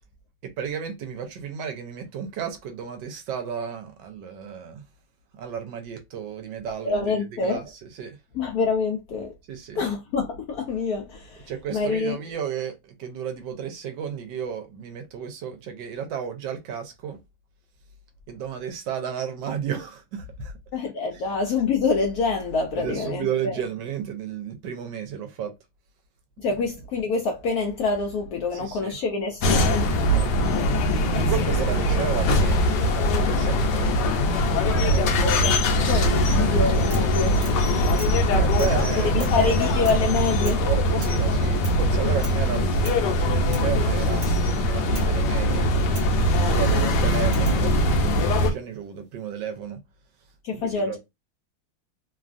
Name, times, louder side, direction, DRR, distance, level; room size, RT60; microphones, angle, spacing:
voice 1, 0.4-4.8 5.3-8.2 9.5-9.8 11.5-17.2 18.3-20.5 22.7-25.5 26.5-26.7 28.5-29.0 29.6-30.3 31.0-34.1 38.3-39.3 40.7-44.3 44.6-45.7 46.4-49.8 50.5-51.0, right 8 dB, 75° right, 1.2 m, -33 dB
voice 2, 6.8-7.6 8.3-9.3 9.8-12.2 20.7-23.5 26.4-29.9 34.9-37.5 39.1-40.6 46.3-46.6 50.4-51.0, left 4 dB, 85° left, 0.8 m, -26 dB
sound 1, 29.4-48.5, equal, 70° left, 1.1 m, -21 dB
sound 2, 36.9-37.1 37.4-37.6 38.0-38.2 38.6-38.8 39.2-39.4 39.8-40.1 40.4-40.7 41.0-41.2 41.6-41.8 42.2-42.4 42.8-43.1 43.5-43.7 44.2-44.4 44.9-45.1 45.9-46.2 47.3-47.6 48.8-49.3, right 3 dB, 50° right, 1.3 m, -42 dB
3.2 x 2.3 x 2.4 m
omnidirectional pair, 2.1 m